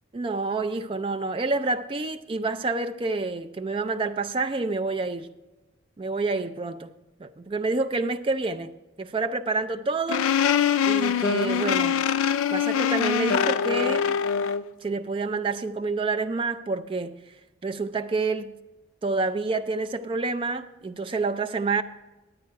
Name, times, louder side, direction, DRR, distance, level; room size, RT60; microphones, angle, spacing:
voice 1, 0.1-5.3 6.0-6.9 7.2-10.3 10.9-12.0 12.5-14.2 14.8-17.2 17.6-18.5 19.0-21.8, right 3 dB, 25° right, 0.3 m, -28 dB
sound 1, 10.1-14.6, left 7 dB, 90° left, 0.3 m, -23 dB
9.4 x 8.9 x 4.6 m
head